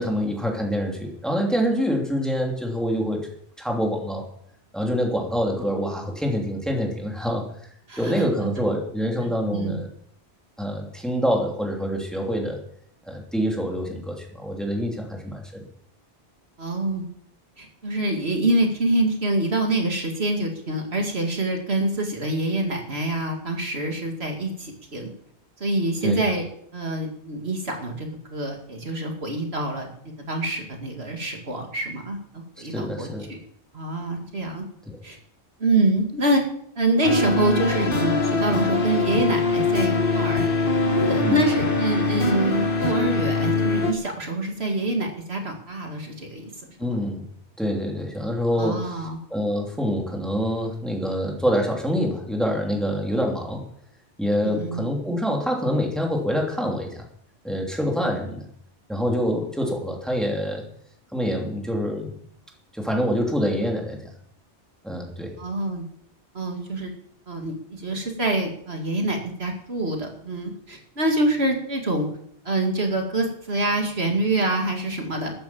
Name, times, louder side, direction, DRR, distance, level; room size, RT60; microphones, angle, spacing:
voice 1, 0.0-3.3 3.6-4.3 4.7-7.4 8.0-9.9 10.6-12.6 13.0-15.6 26.0-26.2 32.6-33.3 34.9-35.0 41.1-41.4 46.8-47.3 47.6-53.6 54.2-57.1 57.4-58.5 58.9-60.6 61.1-62.1 62.7-64.1 64.8-65.3, equal, ahead, 0 dB, 2.9 m, -26 dB
voice 2, 7.9-8.2 9.5-9.8 16.6-17.1 17.6-25.1 25.6-26.5 26.7-33.4 33.7-34.6 35.0-35.2 35.6-36.4 36.8-40.4 40.8-46.5 46.8-46.9 48.6-49.2 54.4-54.8 65.4-65.8 66.3-66.9 67.3-72.1 72.4-75.3, right 2 dB, 65° right, 2 dB, 2.6 m, -26 dB
sound 1, 37.0-43.9, left 3 dB, 50° left, 1.6 m, -23 dB
13.5 x 11.0 x 7.1 m, 0.67 s
omnidirectional pair, 1.2 m